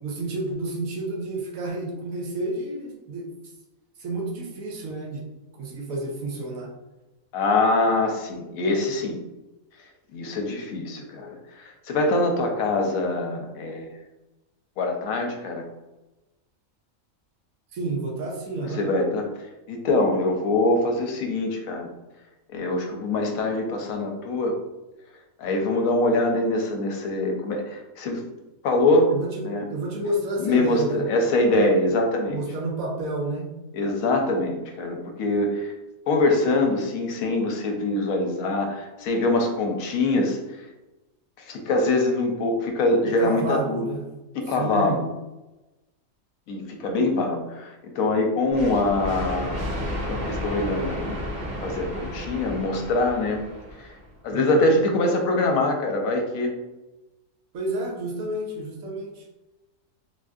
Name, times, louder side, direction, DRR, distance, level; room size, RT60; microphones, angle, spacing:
voice 1, 0.0-3.3 4.0-5.2 5.6-6.7 17.7-18.9 29.1-31.1 32.3-33.5 43.1-44.1 44.6-45.0 54.3-54.8 57.5-59.2, right 2 dB, 75° right, -1 dB, 1.1 m, -30 dB
voice 2, 7.3-9.2 10.1-13.9 14.8-15.6 18.6-19.2 19.7-21.9 22.5-24.5 25.4-28.2 28.6-29.1 29.4-29.6 30.4-32.4 33.7-35.7 36.1-40.4 41.5-43.8 44.3-45.1 46.5-49.6 50.1-51.2 51.6-53.4 54.2-56.5, left 2 dB, 80° left, 3 dB, 1.0 m, -24 dB
sound 1, 48.5-54.1, equal, 40° right, 1.3 m, -32 dB
3.5 x 2.6 x 2.3 m, 1.0 s
omnidirectional pair, 1.5 m